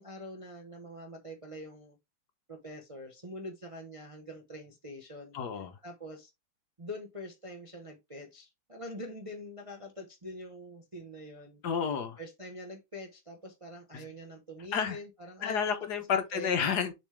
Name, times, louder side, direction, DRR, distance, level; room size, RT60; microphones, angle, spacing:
voice 1, 0.0-2.0 2.5-5.4 5.8-6.3 6.8-11.6 12.2-16.6, left 1 dB, 25° right, 0.7 m, -44 dB
voice 2, 5.3-5.7 11.6-12.2 13.9-14.0 14.7-15.0 15.4-16.9, left 7 dB, 60° left, 1.4 m, -30 dB
7.0 x 4.0 x 3.3 m
omnidirectional pair, 2.1 m